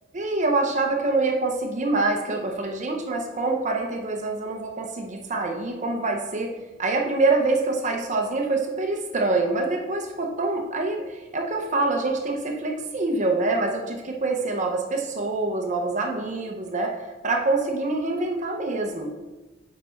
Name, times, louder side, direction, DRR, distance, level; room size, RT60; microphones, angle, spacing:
voice 1, 0.1-6.5 6.8-17.0 17.2-19.1, right 3 dB, 40° right, 2 dB, 0.7 m, -25 dB
5.8 x 5.1 x 4.4 m, 1.1 s
head